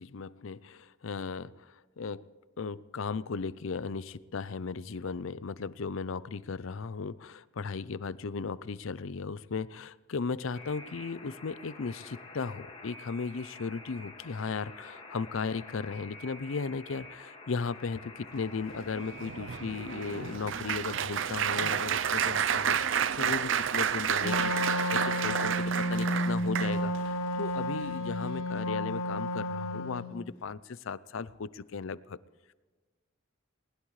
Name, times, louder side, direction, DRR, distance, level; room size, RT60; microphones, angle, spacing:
voice 1, 0.0-2.3 2.6-32.2, left 4 dB, 70° left, 18 dB, 0.5 m, -36 dB
Alarm, 10.5-20.4, left 2 dB, 30° left, 1.9 m, -48 dB
Applause, 18.7-27.1 27.7-27.9 28.2-28.4, right 8 dB, 65° right, 0.5 m, -30 dB
Wind instrument woodwind instrument, 24.2-30.2, left 1 dB, 90° left, 1.0 m, -32 dB
20.0 x 19.5 x 3.2 m, 1.4 s
head